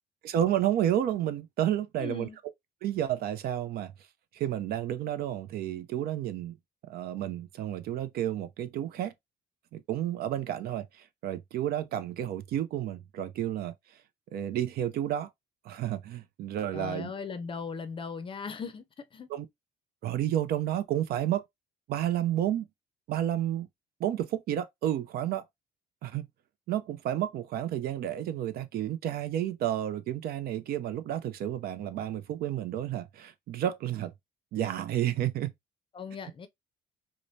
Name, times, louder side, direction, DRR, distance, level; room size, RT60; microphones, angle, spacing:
voice 1, 0.2-2.3 2.8-3.9 4.3-6.6 6.9-9.1 9.7-13.7 14.3-15.3 15.6-17.1 19.3-19.5 20.0-21.4 21.9-22.7 23.1-23.7 24.0-25.4 26.0-26.3 26.7-34.1 34.5-35.5, right 11 dB, 65° right, 0.5 m, -31 dB
voice 2, 2.0-2.4 16.7-19.3 35.9-36.5, left 5 dB, 30° left, 0.5 m, -38 dB
4.8 x 2.1 x 2.6 m
cardioid pair, 110°, 17 cm